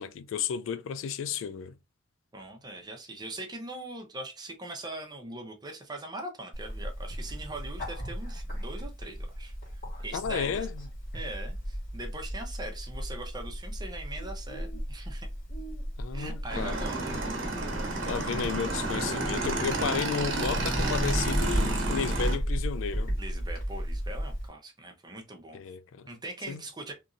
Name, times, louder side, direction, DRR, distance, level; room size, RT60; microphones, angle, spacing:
voice 1, 0.0-1.8 10.1-10.9 16.0-16.8 18.0-23.1 25.5-26.1 26.5-26.6, left 7 dB, 80° left, 0.3 m, -33 dB
voice 2, 2.3-9.5 10.0-10.6 11.1-15.3 16.1-17.3 23.2-25.6 26.1-26.9, right 2 dB, 20° right, 0.7 m, -41 dB
Bird, 6.5-24.5, equal, 50° left, 1.6 m, -34 dB
Motorcycle / Engine, 16.5-22.3, right 2 dB, 75° right, 0.8 m, -31 dB
2.9 x 2.5 x 2.5 m
head